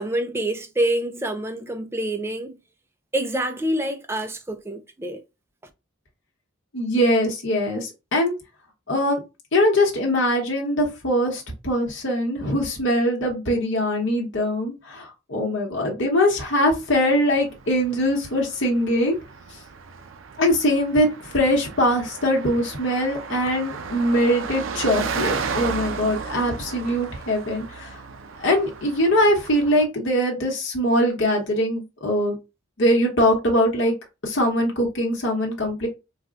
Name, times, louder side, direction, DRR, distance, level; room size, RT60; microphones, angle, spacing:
voice 1, 0.0-2.6 3.1-5.2, right 1 dB, 10° right, 0.4 m, -26 dB
voice 2, 6.7-8.3 8.9-9.2 9.5-19.2 20.4-28.0 28.4-32.3 32.8-33.9 34.2-35.9, equal, 65° left, 1.0 m, -22 dB
Car passing by, 16.6-29.9, right 5 dB, 75° right, 0.5 m, -34 dB
4.1 x 2.2 x 2.4 m
head